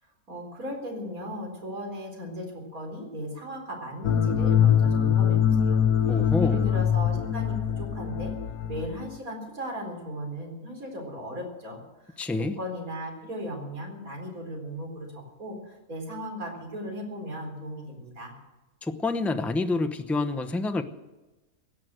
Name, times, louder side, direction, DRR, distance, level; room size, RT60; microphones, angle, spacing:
voice 1, 0.3-5.8 6.4-8.3 8.7-18.3, equal, 75° right, 2 dB, 4.5 m, -37 dB
sound 1, 4.0-9.2, left 8 dB, 80° left, 1.3 m, -23 dB
voice 2, 6.1-6.7 12.2-12.6 18.8-20.8, left 3 dB, ahead, 8 dB, 0.6 m, -28 dB
17.0 x 10.5 x 7.8 m, 1.1 s
omnidirectional pair, 1.5 m